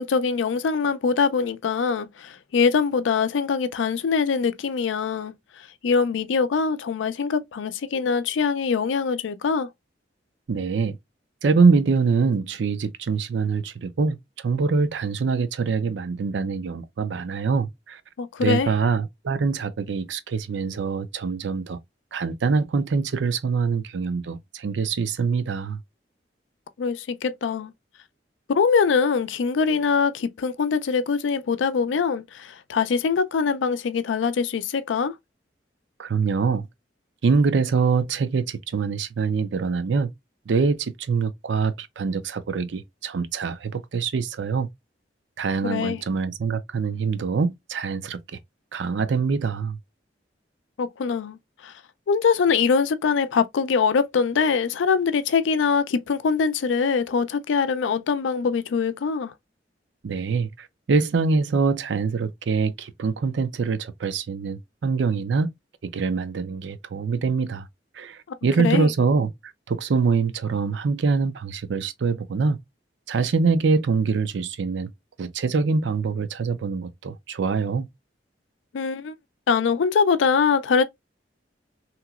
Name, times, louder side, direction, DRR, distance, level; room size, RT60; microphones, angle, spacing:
voice 1, 0.0-5.3 5.8-9.7 18.2-18.7 26.8-27.7 28.5-35.1 45.6-46.0 50.8-51.4 51.6-51.7 52.1-59.3 68.6-68.9 78.7-79.1 79.5-80.8, left 5 dB, 90° left, 0.4 m, -23 dB
voice 2, 10.5-11.0 11.4-14.2 14.4-18.0 18.4-21.8 22.1-25.8 36.0-36.7 37.2-40.1 40.5-44.7 45.4-48.2 48.7-49.8 60.0-65.5 65.8-67.7 68.0-69.3 69.7-72.6 73.1-74.9 75.2-77.9, right 4 dB, 70° right, 0.5 m, -24 dB
2.9 x 2.8 x 2.3 m
head